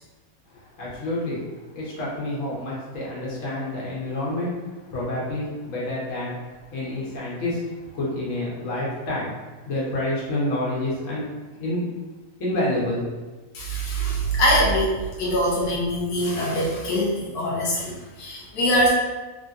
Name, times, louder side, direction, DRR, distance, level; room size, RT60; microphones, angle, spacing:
voice 1, 0.5-1.4 1.7-4.5 4.9-6.4 6.7-7.6 7.9-9.3 9.7-11.3 11.6-11.8 12.4-13.0, left 1 dB, 55° left, -6 dB, 1.2 m, -28 dB
voice 2, 13.5-18.9, equal, 80° left, -5 dB, 1.3 m, -23 dB
3.3 x 2.7 x 2.4 m, 1.2 s
omnidirectional pair, 1.7 m